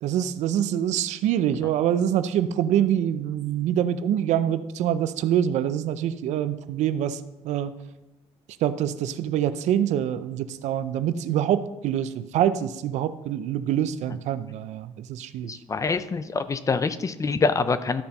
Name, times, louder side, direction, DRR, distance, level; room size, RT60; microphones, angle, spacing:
voice 1, 0.0-7.2 7.4-7.7 8.6-15.5, right 10 dB, 85° right, 12 dB, 0.5 m, -25 dB
voice 2, 15.5-18.0, left 4 dB, 30° left, 12 dB, 0.6 m, -25 dB
13.0 x 4.3 x 5.2 m, 1.0 s
cardioid pair, 110°, 12 cm